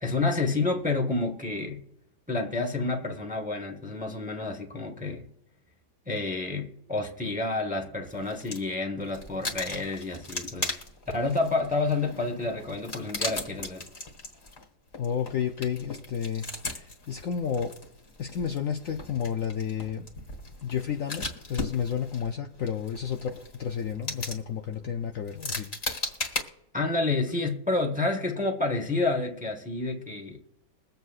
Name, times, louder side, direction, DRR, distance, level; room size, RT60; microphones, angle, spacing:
voice 1, 0.0-1.8 2.3-5.3 6.1-10.7 11.1-13.9 26.7-30.4, left 3 dB, 5° right, 0.7 m, -29 dB
sound 1, 8.1-8.7 9.0-26.4, left 2 dB, 35° left, 1.7 m, -38 dB
voice 2, 15.0-17.7 18.2-20.1 20.6-25.7, left 8 dB, 90° left, 0.7 m, -31 dB
22.5 x 7.9 x 2.5 m
omnidirectional pair, 2.1 m